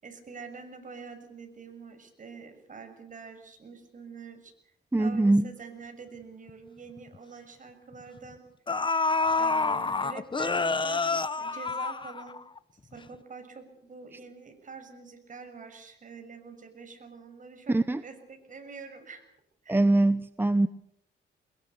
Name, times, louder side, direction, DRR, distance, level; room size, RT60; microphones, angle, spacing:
voice 1, 0.0-4.5 5.0-8.4 9.3-12.4 12.9-19.2 19.6-19.8, right 5 dB, 40° right, 6 dB, 6.6 m, -46 dB
voice 2, 4.9-5.5 17.7-18.0 19.7-20.7, right 2 dB, 10° right, 14 dB, 0.8 m, -23 dB
sound 1, 6.5-6.6 7.0-7.2 8.2-8.3 8.7-12.6 12.9-13.0, left 3 dB, 25° left, 1.1 m, -28 dB
24.0 x 22.0 x 6.8 m, 0.74 s
cardioid pair, 90°, 20 cm